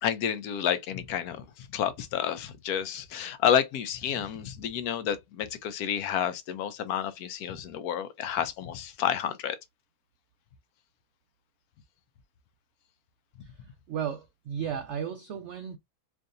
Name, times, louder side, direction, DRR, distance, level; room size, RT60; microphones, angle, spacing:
voice 1, 0.0-9.6, left 9 dB, 70° left, 1.0 m, -30 dB
voice 2, 13.9-15.8, right 8 dB, 85° right, 0.6 m, -34 dB
4.7 x 2.6 x 2.5 m
omnidirectional pair, 1.8 m